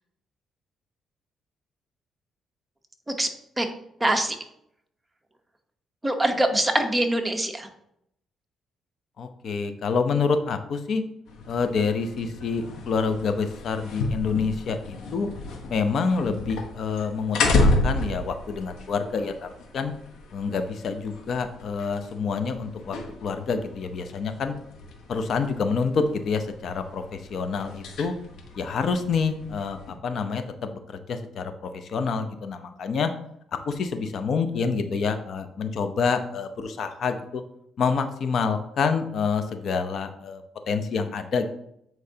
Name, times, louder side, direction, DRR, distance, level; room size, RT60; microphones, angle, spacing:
voice 1, 4.0-4.4 6.0-7.7, right 1 dB, 15° right, 5 dB, 0.9 m, -23 dB
voice 2, 9.2-11.0 11.5-15.3 15.7-19.5 19.7-19.9 20.3-24.5 25.1-28.1 28.6-33.1 33.7-37.4 37.8-41.5, left 5 dB, 60° left, 8 dB, 0.7 m, -27 dB
sound 1, 11.3-29.9, left 2 dB, 80° left, 1.1 m, -32 dB
8.6 x 4.6 x 2.8 m, 0.75 s
cardioid pair, 90°, 0 cm